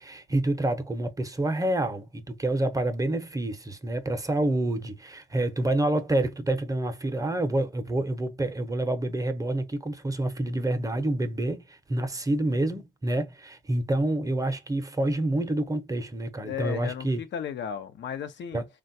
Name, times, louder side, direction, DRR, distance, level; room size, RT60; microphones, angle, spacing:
voice 1, 0.0-17.2 18.5-18.7, right 1 dB, 15° right, 0.7 m, -28 dB
voice 2, 16.5-18.6, left 8 dB, 65° left, 0.7 m, -34 dB
3.2 x 2.3 x 2.6 m
cardioid pair, 90°, 20 cm